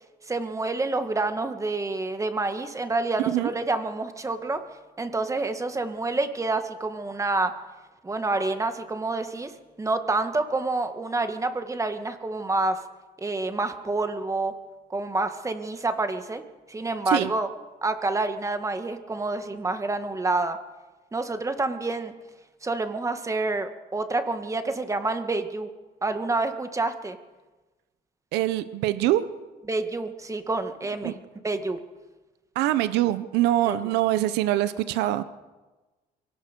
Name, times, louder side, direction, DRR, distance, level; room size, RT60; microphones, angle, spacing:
voice 1, 0.3-4.6 5.0-7.5 8.0-9.5 9.8-12.8 13.2-14.6 14.9-16.4 16.7-17.5 17.8-20.6 21.1-22.1 22.6-25.7 26.0-27.2 29.7-31.2 31.4-31.8 33.7-33.8, right 3 dB, 20° right, 8 dB, 1.8 m, -28 dB
voice 2, 3.2-3.5 17.1-17.3 28.3-29.2 31.0-31.1 32.5-35.2, right 14 dB, 90° right, 13 dB, 0.9 m, -24 dB
23.5 x 17.5 x 6.8 m, 1.2 s
cardioid pair, 110°, 17 cm